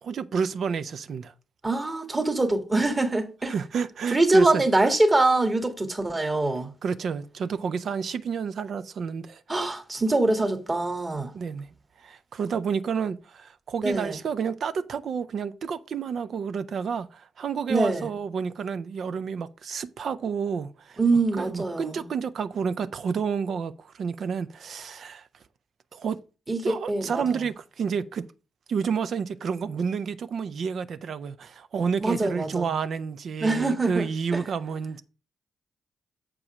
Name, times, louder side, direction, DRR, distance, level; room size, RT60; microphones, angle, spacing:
voice 1, 0.0-1.3 3.4-4.6 6.8-9.4 11.3-11.7 12.0-21.0 21.4-25.3 25.9-26.2 26.6-28.2 28.7-35.0, right 6 dB, 60° right, 0.5 m, -30 dB
voice 2, 1.6-3.5 4.1-6.7 9.5-11.3 13.8-14.2 17.7-18.1 21.0-22.1 26.5-27.4 32.0-32.7 33.4-34.4, right 2 dB, 30° right, 1.9 m, -24 dB
7.5 x 4.9 x 4.9 m
hypercardioid pair, 40°, 0 cm